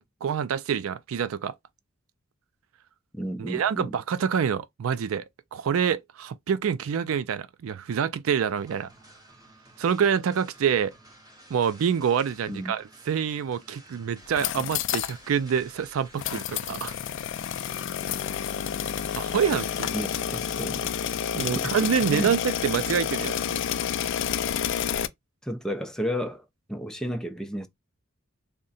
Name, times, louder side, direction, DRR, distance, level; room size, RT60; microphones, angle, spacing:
voice 1, 0.0-1.5 3.4-5.3 5.5-8.9 9.8-10.9 11.5-16.9 19.1-19.9 21.3-23.6, right 7 dB, 80° right, 0.4 m, -26 dB
voice 2, 3.1-3.9 12.5-12.7 19.9-20.9 21.4-22.3 25.4-27.7, equal, 5° left, 0.5 m, -33 dB
sound 1, 8.5-20.2, right 1 dB, 20° right, 1.7 m, -52 dB
sound 2, 14.2-15.2 15.5-15.6 16.2-25.1, left 9 dB, 60° left, 0.4 m, -29 dB
3.6 x 2.1 x 4.0 m
head